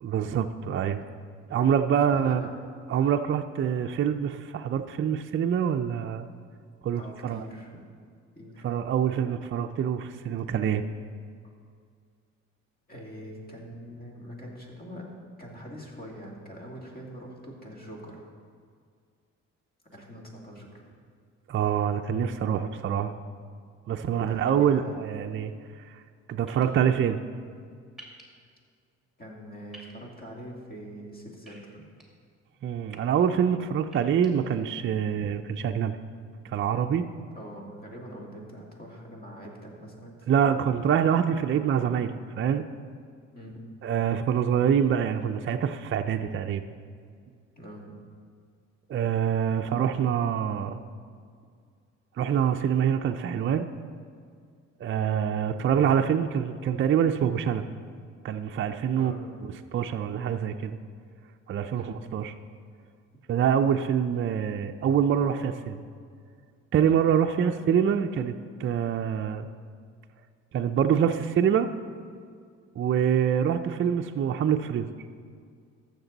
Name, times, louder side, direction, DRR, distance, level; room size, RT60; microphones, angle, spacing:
voice 1, 0.0-1.0 1.5-2.5 2.9-6.3 6.8-7.4 8.6-10.8 21.5-23.1 23.9-25.5 26.3-27.2 32.6-36.0 36.4-37.0 40.3-42.7 43.8-46.6 48.9-50.8 52.2-53.7 54.8-57.7 58.2-59.1 59.7-60.8 61.5-62.3 63.3-65.8 66.7-68.3 68.6-69.5 70.5-71.7 72.8-74.9, right 8 dB, 40° right, 6 dB, 0.5 m, -25 dB
voice 2, 1.9-2.5 7.0-7.8 8.4-8.7 12.9-15.1 15.4-18.2 19.9-20.9 24.2-25.0 29.2-31.8 37.3-40.7 43.3-43.6 47.6-48.0 59.0-59.2 61.7-62.0 67.4-67.5, equal, 30° left, -1 dB, 2.3 m, -43 dB
sound 1, 26.5-26.6 28.0-28.2 29.7-29.9 31.5-32.0 32.7-33.0 33.8-34.3, right 2 dB, ahead, 2.1 m, -49 dB
14.0 x 6.7 x 4.0 m, 2.1 s
cardioid pair, 90°, 30 cm